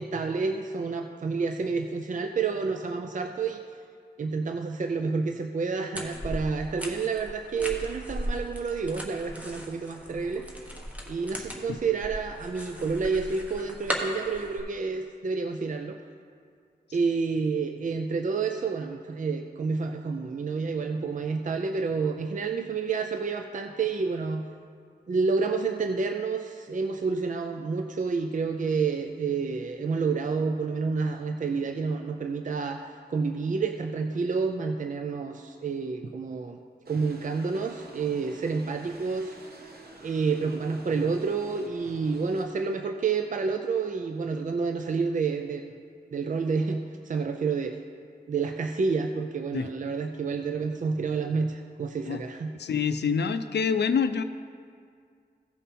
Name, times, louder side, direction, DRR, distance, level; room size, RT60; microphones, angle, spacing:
voice 1, 0.0-3.6 4.2-10.5 11.1-16.0 16.9-24.4 25.1-36.6 36.9-39.4 40.0-45.6 46.1-47.8 48.3-52.5, right 4 dB, 50° right, 5 dB, 0.4 m, -29 dB
sound 1, 5.9-14.6, equal, 10° right, 1.2 m, -37 dB
sound 2, 36.8-42.5, right 2 dB, 65° right, 1.1 m, -48 dB
voice 2, 52.6-54.2, left 6 dB, 80° left, 11 dB, 0.4 m, -26 dB
15.5 x 5.4 x 4.2 m, 2.2 s
wide cardioid pair, 75°, 17 cm